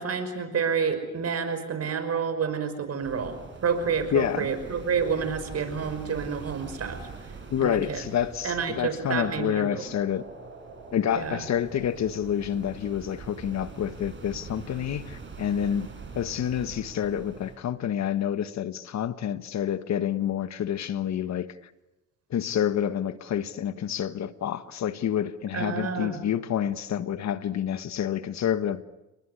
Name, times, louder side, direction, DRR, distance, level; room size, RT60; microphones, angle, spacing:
voice 1, 0.0-7.1 7.6-8.0 8.4-9.9 11.2-11.4 25.5-26.2, right 6 dB, 55° right, 5.7 m, -29 dB
sound 1, 3.0-17.6, right 4 dB, 40° right, 7.2 m, -43 dB
voice 2, 4.1-4.5 7.5-10.2 10.9-21.5 22.3-28.8, left 9 dB, 65° left, 1.5 m, -28 dB
30.0 x 20.0 x 9.9 m
cardioid pair, 90°, 30 cm